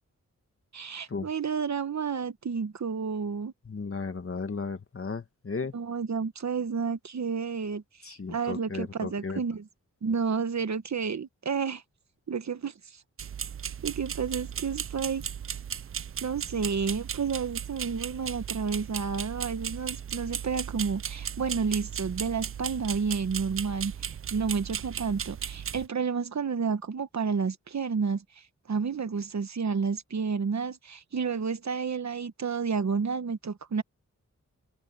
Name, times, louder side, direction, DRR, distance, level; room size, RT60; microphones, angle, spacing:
voice 1, 0.7-3.5 5.7-9.6 10.0-11.8 12.3-12.7 13.8-15.2 16.2-23.9 24.3-28.2 28.7-33.8, right 5 dB, 65° right, 1.2 m, -30 dB
voice 2, 3.6-5.7 8.0-9.4, left 4 dB, 45° left, 2.1 m, -35 dB
sound 1, 13.2-25.9, right 8 dB, 45° right, 0.4 m, -36 dB
wide cardioid pair, 100°, 30 cm